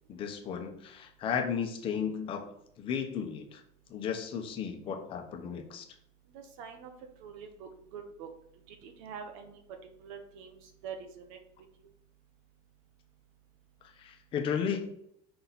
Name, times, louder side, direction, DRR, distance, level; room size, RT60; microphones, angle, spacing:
voice 1, 0.1-3.6 3.9-5.9 14.0-14.9, left 7 dB, 30° left, 4 dB, 0.9 m, -34 dB
voice 2, 6.3-6.9 7.2-8.3 8.7-9.6 10.0-10.6 10.8-11.4, right 6 dB, 85° right, 5 dB, 1.1 m, -45 dB
5.6 x 4.2 x 4.0 m, 0.72 s
cardioid pair, 175°, 17 cm